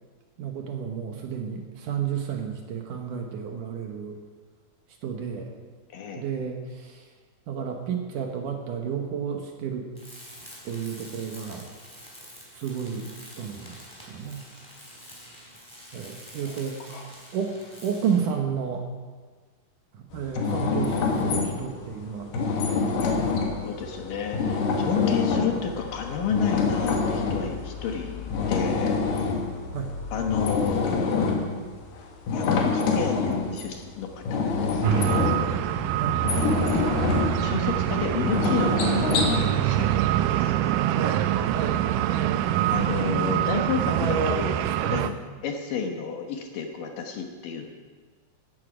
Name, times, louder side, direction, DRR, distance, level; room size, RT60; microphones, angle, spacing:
voice 1, 0.4-4.2 5.0-5.5 6.2-7.0 7.5-9.9 10.7-11.7 12.5-14.4 15.9-18.8 19.9-23.5 29.7-29.9 36.0-36.2 40.9-41.2 41.5-41.8 43.8-44.4 44.8-45.0, right 7 dB, 65° right, 3 dB, 2.3 m, -32 dB
voice 2, 5.9-6.2 16.9-17.1 23.6-29.0 30.1-31.3 32.3-35.5 36.6-37.0 37.4-40.8 42.7-44.6 44.9-45.2 45.4-47.7, left 7 dB, 65° left, 3 dB, 2.6 m, -31 dB
Tools, 9.9-18.3, equal, 5° left, 3.4 m, -47 dB
sound 1, 20.1-40.0, left 4 dB, 85° left, 3.8 m, -27 dB
sound 2, 34.8-45.1, right 11 dB, 80° right, 2.0 m, -25 dB
16.0 x 13.0 x 5.0 m, 1.5 s
omnidirectional pair, 4.5 m